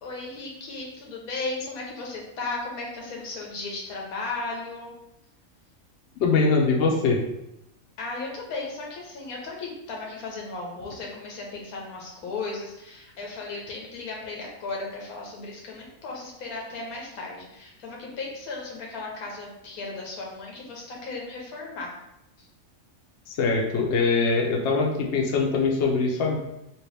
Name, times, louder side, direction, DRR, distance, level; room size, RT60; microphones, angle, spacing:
voice 1, 0.0-4.9 8.0-21.9 22.4-22.5, left 3 dB, 90° left, -1 dB, 1.3 m, -35 dB
voice 2, 6.2-7.2 23.3-26.4, left 4 dB, 60° left, -1 dB, 0.8 m, -22 dB
2.9 x 2.9 x 3.1 m, 0.86 s
omnidirectional pair, 1.5 m